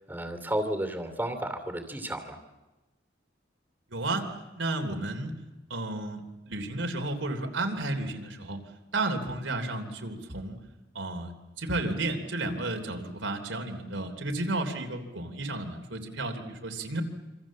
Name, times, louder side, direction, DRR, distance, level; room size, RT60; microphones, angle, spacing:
voice 1, 0.1-2.4, right 1 dB, 10° right, 8 dB, 2.7 m, -32 dB
voice 2, 3.9-4.3 4.6-5.3 5.7-8.6 8.9-10.6 10.9-17.0, right 2 dB, 80° right, 4 dB, 3.3 m, -32 dB
26.5 x 26.5 x 7.5 m, 1.1 s
head